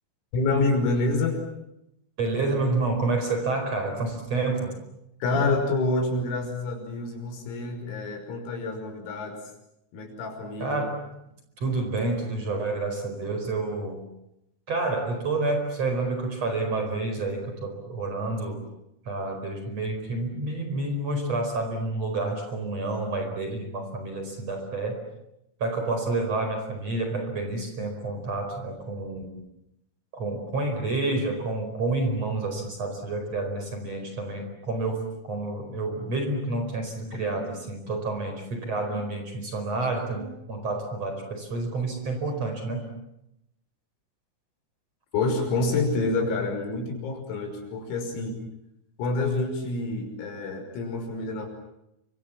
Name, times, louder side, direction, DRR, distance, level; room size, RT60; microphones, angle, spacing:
voice 1, 0.3-1.4 5.2-9.4 9.9-10.8 37.1-37.6 38.9-39.0 40.2-40.3 45.1-48.4 49.0-51.5, left 3 dB, 85° left, 4 dB, 8.5 m, -27 dB
voice 2, 2.2-4.7 10.6-11.1 11.6-14.0 14.7-18.6 19.1-25.0 25.6-29.2 30.1-42.9, right 2 dB, 30° right, 5 dB, 5.4 m, -29 dB
30.0 x 26.0 x 7.4 m, 0.83 s
omnidirectional pair, 6.0 m